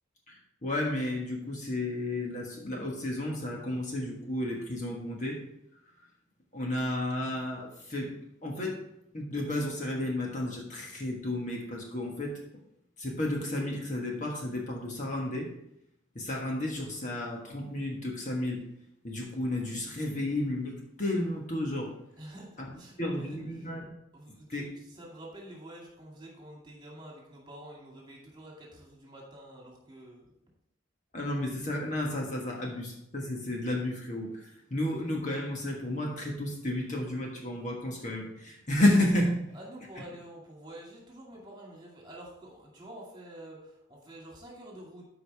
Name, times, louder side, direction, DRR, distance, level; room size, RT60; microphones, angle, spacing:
voice 1, 0.3-5.5 6.5-8.8 9.1-12.4 13.0-15.5 16.1-18.7 19.0-21.9 22.6-22.7 23.0-23.9 24.5-24.6 31.1-39.5, left 1 dB, 35° left, -1 dB, 1.4 m, -32 dB
voice 2, 22.2-23.8 24.1-30.3 39.5-45.0, right 1 dB, 20° right, -2 dB, 2.2 m, -48 dB
13.5 x 4.9 x 3.5 m, 0.80 s
head